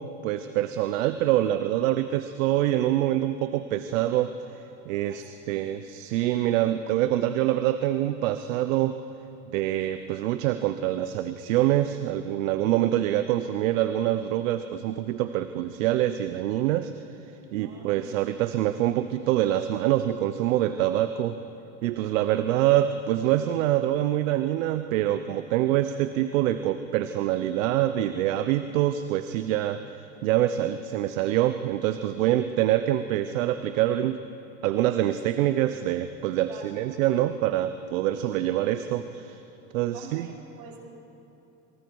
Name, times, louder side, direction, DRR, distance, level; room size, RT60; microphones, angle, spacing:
voice 1, 0.2-4.3 4.9-9.0 9.5-16.9 17.5-21.4 21.8-29.8 30.2-34.2 34.6-39.4 39.7-40.3, right 13 dB, 75° right, 11 dB, 0.8 m, -25 dB
voice 2, 5.1-5.7 17.6-18.3 36.5-36.8 39.9-40.8, right 6 dB, 60° right, 0 dB, 4.4 m, -47 dB
27.5 x 23.5 x 4.7 m, 2.9 s
hypercardioid pair, 90°, 39 cm